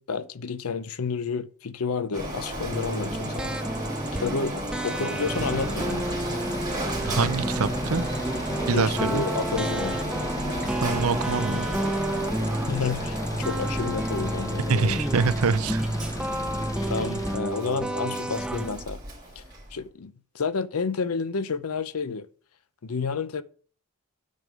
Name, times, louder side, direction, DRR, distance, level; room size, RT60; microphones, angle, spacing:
voice 1, 0.0-3.6 4.2-6.1 8.7-10.0 12.7-15.0 16.9-19.0 19.4-19.5 19.7-22.3 22.8-23.4, left 5 dB, 75° left, 0.6 m, -30 dB
Printer, 2.1-19.8, right 1 dB, 20° right, 3.7 m, -34 dB
sound 1, 2.7-18.8, right 1 dB, 5° right, 0.5 m, -31 dB
sound 2, 5.2-17.4, left 1 dB, 15° left, 1.1 m, -35 dB
voice 2, 7.1-8.0 8.7-9.3 10.8-11.7 14.7-15.9, right 5 dB, 70° right, 0.6 m, -25 dB
9.3 x 5.3 x 6.2 m
head